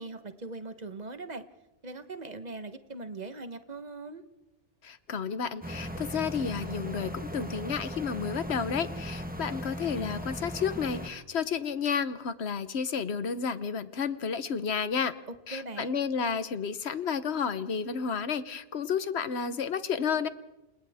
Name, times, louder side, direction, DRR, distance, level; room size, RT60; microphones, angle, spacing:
voice 1, 0.0-1.4 1.8-4.2 15.5-16.0, right 3 dB, 40° right, 9 dB, 1.3 m, -40 dB
voice 2, 4.8-15.1 15.5-20.3, left 6 dB, 65° left, 12 dB, 1.3 m, -31 dB
sound 1, 5.6-11.1, equal, 10° right, 1.3 m, -38 dB
29.5 x 26.5 x 3.6 m, 1.0 s
omnidirectional pair, 1.2 m